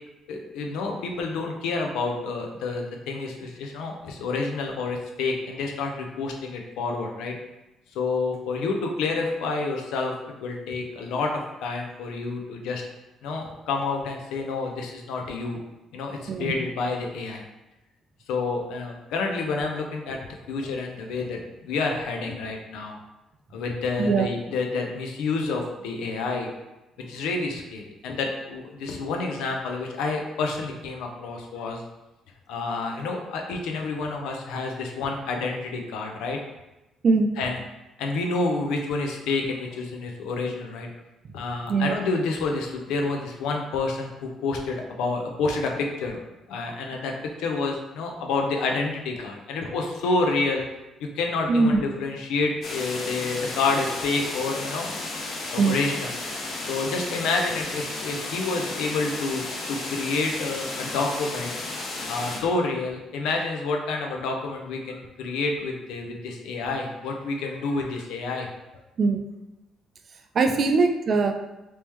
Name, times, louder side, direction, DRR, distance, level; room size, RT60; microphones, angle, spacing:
voice 1, 0.3-7.3 7.9-12.8 13.2-15.6 15.9-17.4 18.3-20.2 20.5-23.0 23.5-26.5 27.1-31.8 32.5-36.4 37.4-37.6 38.0-40.9 41.3-46.2 46.5-50.7 51.0-54.9 55.5-56.1 56.7-61.5 62.1-68.5, left 3 dB, 90° left, 2 dB, 0.6 m, -29 dB
voice 2, 24.0-24.3 37.0-37.3 41.7-42.0 51.5-51.8 55.6-55.8 69.0-69.2 70.3-71.3, right 4 dB, 40° right, 5 dB, 0.4 m, -21 dB
sound 1, 52.6-62.4, left 2 dB, 50° left, 0.7 m, -33 dB
3.5 x 3.0 x 3.0 m, 0.99 s
cardioid pair, 135°, 0 cm